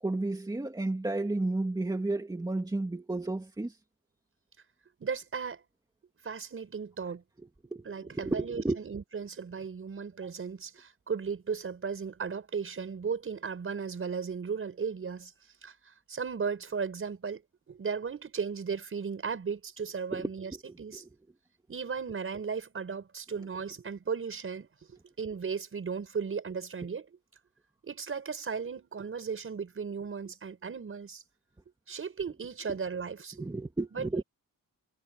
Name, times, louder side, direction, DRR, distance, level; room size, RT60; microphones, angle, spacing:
voice 1, 0.0-3.8 7.4-8.8 20.1-21.1 23.4-23.5 33.3-34.2, right 2 dB, 10° right, 2.4 m, -33 dB
voice 2, 5.0-5.6 6.2-7.2 7.9-15.3 15.6-15.7 16.1-17.4 17.7-20.5 20.8-21.0 21.7-27.1 27.8-31.2 31.9-33.4 33.9-34.1, right 6 dB, 40° right, 5.4 m, -36 dB
wide cardioid pair, 180°, 35 cm